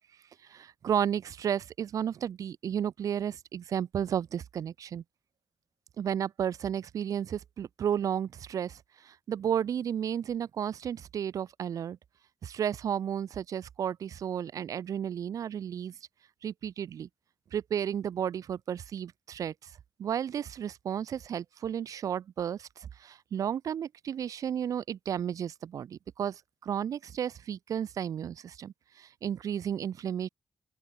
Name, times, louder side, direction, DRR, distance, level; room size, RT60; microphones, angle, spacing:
voice 1, 0.5-5.0 6.0-12.0 12.4-15.9 16.4-17.1 17.5-19.7 20.0-30.3, right 9 dB, 85° right, 4.3 m, -33 dB
open air
wide cardioid pair, 120°, 6 cm